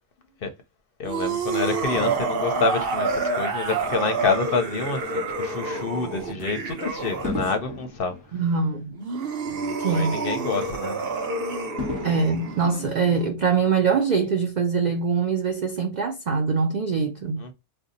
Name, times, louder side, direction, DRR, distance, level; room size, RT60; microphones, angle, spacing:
voice 1, 1.0-8.2 9.5-11.0 17.4-17.5, left 4 dB, 55° left, 0.7 m, -28 dB
sound 1, 1.0-7.5 8.9-13.3, right 3 dB, 55° right, 0.9 m, -28 dB
Fireworks, 1.9-4.5 5.1-5.4 7.2-9.7 10.1-10.2 11.8-13.7 14.4-14.5, left 2 dB, 5° left, 0.9 m, -37 dB
voice 2, 8.4-9.0 9.8-10.2 12.0-17.4, right 5 dB, 70° right, 0.4 m, -23 dB
2.7 x 2.2 x 3.7 m
omnidirectional pair, 1.3 m